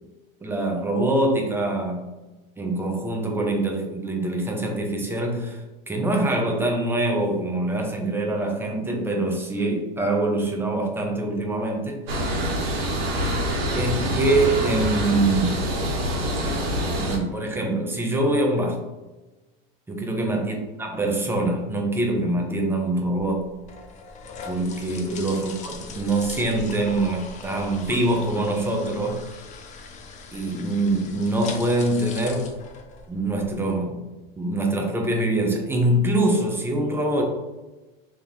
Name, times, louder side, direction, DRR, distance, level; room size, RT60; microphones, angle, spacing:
voice 1, 0.4-2.1 2.6-12.0 13.7-15.5 17.0-18.8 19.9-23.5 24.4-29.2 30.3-32.6 33.1-34.0 34.4-37.2, right 2 dB, 10° right, 2 dB, 0.7 m, -24 dB
sound 1, 12.1-17.2, equal, 75° right, 1.3 m, -25 dB
sound 2, 23.2-33.5, left 4 dB, 25° left, 0.5 m, -40 dB
3.6 x 3.4 x 3.1 m, 1.1 s
supercardioid pair, 120°, 30 cm